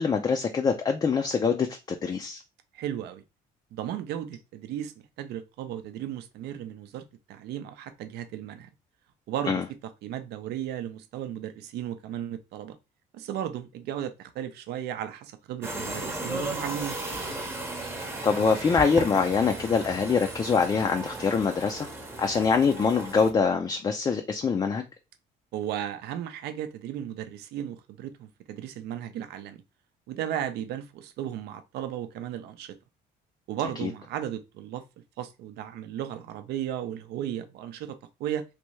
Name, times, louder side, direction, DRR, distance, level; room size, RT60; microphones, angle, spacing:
voice 1, 0.0-2.4 9.5-9.6 17.9-21.9 22.2-24.8 33.8-33.9, left 5 dB, 25° left, 0.4 m, -24 dB
voice 2, 2.7-3.2 3.7-8.7 9.3-9.6 10.0-12.8 13.1-17.0 25.5-29.6 30.1-32.8 33.5-34.8 35.2-38.4, right 10 dB, 75° right, 0.5 m, -35 dB
sound 1, 15.6-23.3, right 2 dB, 15° right, 0.7 m, -35 dB
3.3 x 2.6 x 3.0 m
cardioid pair, 110°, 17 cm